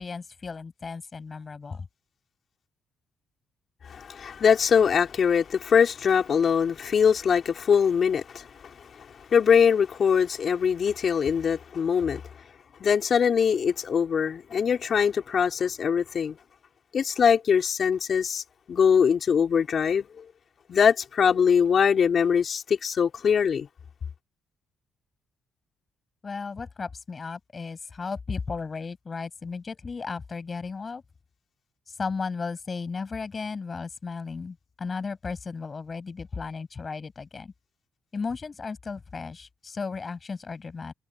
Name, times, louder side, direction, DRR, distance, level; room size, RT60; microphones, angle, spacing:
voice 1, 0.0-1.9 26.2-31.0 32.0-37.5 38.1-40.9, left 4 dB, 35° left, 7.6 m, -35 dB
voice 2, 3.8-12.2 12.8-16.4 16.9-18.4 18.7-20.2 20.7-23.7, left 7 dB, 50° left, 4.1 m, -22 dB
cardioid pair, 90°, 0 cm